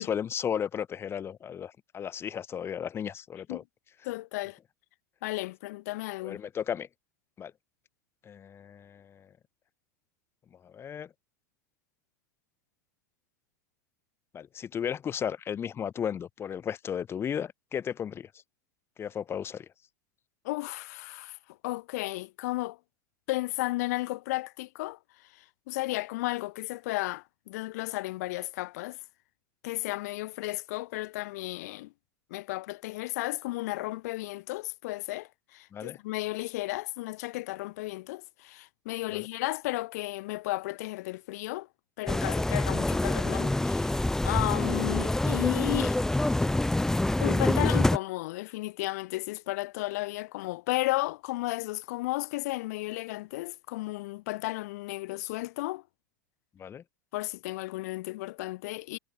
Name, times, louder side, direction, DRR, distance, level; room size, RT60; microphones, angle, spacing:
voice 1, 0.0-3.6 6.2-6.9 7.4-7.5 8.2-9.3 10.6-11.1 14.3-18.3 19.0-19.7 35.7-36.0 39.1-39.3 56.6-56.8, left 8 dB, 25° left, 0.9 m, -34 dB
voice 2, 4.0-4.6 5.2-6.4 20.4-21.4 21.6-22.8 23.3-25.0 25.3-29.0 29.6-31.9 32.3-41.7 42.0-46.0 47.2-55.8 57.1-59.0, left 20 dB, 65° left, 0.7 m, -34 dB
sound 1, 42.1-48.0, left 1 dB, 5° left, 0.9 m, -26 dB
hypercardioid pair, 100°, 9 cm